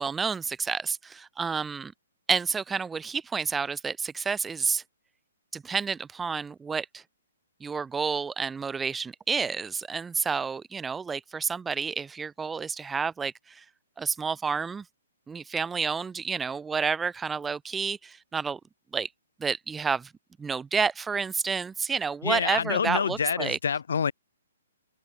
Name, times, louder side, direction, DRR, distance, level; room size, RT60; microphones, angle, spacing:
voice 1, 0.0-1.9 2.3-4.8 5.5-7.0 7.6-13.6 14.0-14.8 15.3-18.6 18.9-19.1 19.4-20.1 20.4-23.6, right 5 dB, 5° right, 6.3 m, -30 dB
voice 2, 22.2-24.1, left 6 dB, 70° left, 3.9 m, -27 dB
hypercardioid pair, 175°, 0 cm